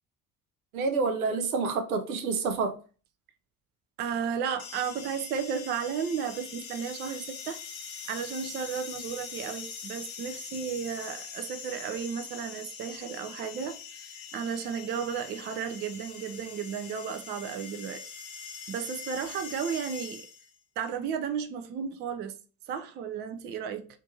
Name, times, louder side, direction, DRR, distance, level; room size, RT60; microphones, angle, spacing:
voice 1, 0.7-2.8, right 4 dB, 75° right, 0.7 m, -28 dB
voice 2, 4.0-7.6 8.1-18.0 18.7-20.3 20.8-22.4 22.7-23.9, right 7 dB, 25° right, 0.3 m, -34 dB
sound 1, 4.6-20.6, left 6 dB, 70° left, 0.8 m, -43 dB
3.4 x 2.5 x 2.6 m
figure-of-eight pair, 55°, 44 cm